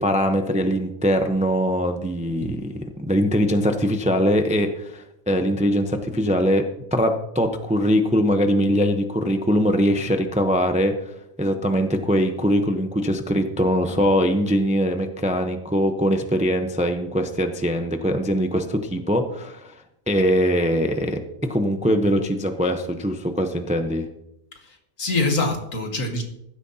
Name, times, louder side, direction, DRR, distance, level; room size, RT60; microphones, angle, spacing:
voice 1, 0.0-2.7 3.0-6.6 6.9-10.9 11.4-19.7 20.1-21.2 21.5-24.1, equal, 5° right, 6 dB, 0.6 m, -22 dB
voice 2, 24.5-26.2, left 2 dB, 65° left, 3 dB, 2.1 m, -25 dB
15.0 x 12.5 x 2.8 m, 0.81 s
omnidirectional pair, 1.5 m